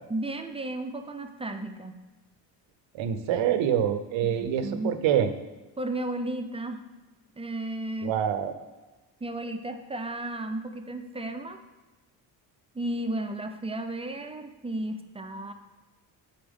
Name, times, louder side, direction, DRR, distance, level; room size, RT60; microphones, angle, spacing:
voice 1, 0.1-2.0 4.2-5.0 5.8-6.8 7.4-8.1 9.2-11.6 12.7-15.5, right 1 dB, 15° right, 6 dB, 0.5 m, -34 dB
voice 2, 2.9-5.3 8.0-8.5, right 9 dB, 80° right, 10 dB, 0.7 m, -26 dB
8.6 x 4.3 x 3.6 m, 1.2 s
cardioid pair, 95°, 45 cm